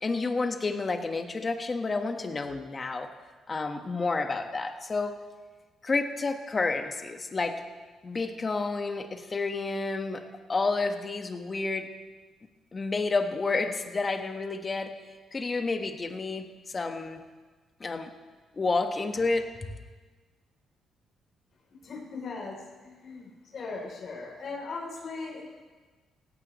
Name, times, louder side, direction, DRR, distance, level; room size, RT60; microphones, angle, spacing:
voice 1, 0.0-3.1 3.5-5.2 5.8-7.6 8.0-10.2 10.5-11.9 12.7-15.0 15.3-17.2 17.8-18.1 18.6-19.7, left 3 dB, 30° left, 6 dB, 1.3 m, -30 dB
voice 2, 21.8-25.4, left 4 dB, 55° left, -1 dB, 3.4 m, -39 dB
17.0 x 16.0 x 3.1 m, 1.4 s
cardioid pair, 90°, 0 cm